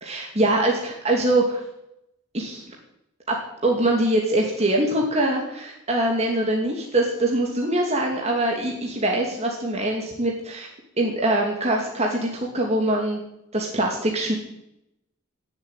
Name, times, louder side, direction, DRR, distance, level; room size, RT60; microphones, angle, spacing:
voice 1, 0.0-1.6 2.3-2.6 3.3-3.4 3.6-10.7 11.0-13.2 13.5-14.3, right 1 dB, 30° right, -1 dB, 2.5 m, -23 dB
18.5 x 7.5 x 9.0 m, 0.83 s
head